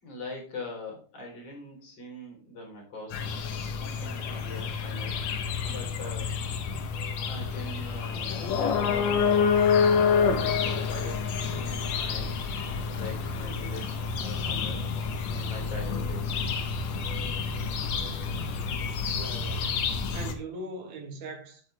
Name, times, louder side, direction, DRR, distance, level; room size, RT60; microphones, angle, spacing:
voice 1, 0.0-3.3 3.9-5.2 5.6-6.3 7.3-9.6 10.3-12.4 12.9-14.8 15.3-16.4, left 2 dB, 35° left, 4.6 m, -42 dB
sound 1, 3.1-20.3, left 6 dB, 75° left, 1.5 m, -28 dB
voice 2, 18.9-21.6, right 2 dB, 60° right, 2.7 m, -41 dB
12.5 x 7.9 x 3.5 m
omnidirectional pair, 4.9 m